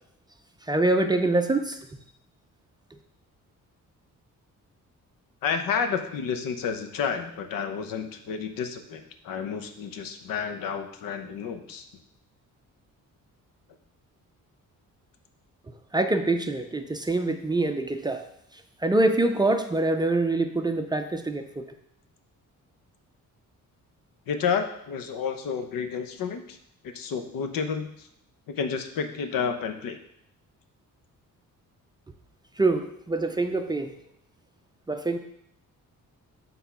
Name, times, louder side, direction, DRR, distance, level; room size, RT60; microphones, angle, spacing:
voice 1, 0.7-1.8 15.9-18.2 18.8-21.6 32.6-33.9 34.9-35.2, right 2 dB, 15° right, 6 dB, 0.4 m, -25 dB
voice 2, 5.4-11.9 24.3-26.6 26.8-28.1 28.5-30.0, left 6 dB, 90° left, 7 dB, 0.9 m, -30 dB
8.1 x 3.7 x 5.7 m, 0.72 s
cardioid pair, 160°, 33 cm